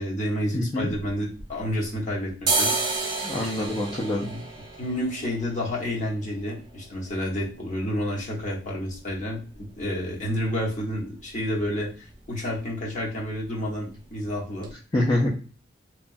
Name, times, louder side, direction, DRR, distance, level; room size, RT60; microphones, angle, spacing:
voice 1, 0.0-2.7 3.4-3.5 4.8-14.7, equal, 40° left, -3 dB, 0.9 m, -30 dB
voice 2, 0.5-0.9 3.2-4.4 14.9-15.3, left 1 dB, 25° left, -3 dB, 0.4 m, -25 dB
sound 1, 0.9-1.9 2.3-10.0 10.3-10.4 10.7-11.2 11.5-11.8 12.0-12.3 12.5-13.3 13.6-13.8 14.2-14.3 14.6-14.7, right 3 dB, 25° right, 0.7 m, -32 dB
3.0 x 2.3 x 2.5 m, 0.38 s
head